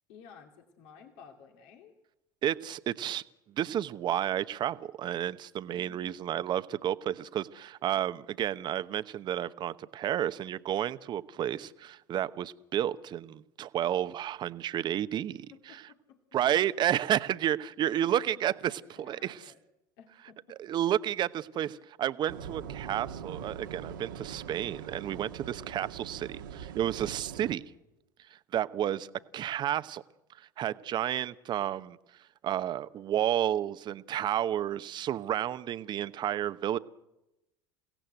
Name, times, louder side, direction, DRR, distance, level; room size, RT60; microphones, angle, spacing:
voice 1, 0.1-2.0 5.7-6.2 15.5-16.4 17.8-19.6 20.0-20.8 25.9-26.2 29.1-29.3, left 6 dB, 65° left, 2.6 m, -55 dB
voice 2, 2.4-15.5 16.3-19.4 20.6-27.6 28.5-30.0 30.4-32.0 32.4-36.8, right 11 dB, 45° right, 1.0 m, -31 dB
sound 1, 22.3-27.5, right 8 dB, 80° right, 1.7 m, -42 dB
29.0 x 17.0 x 8.1 m
hypercardioid pair, 70°, 10 cm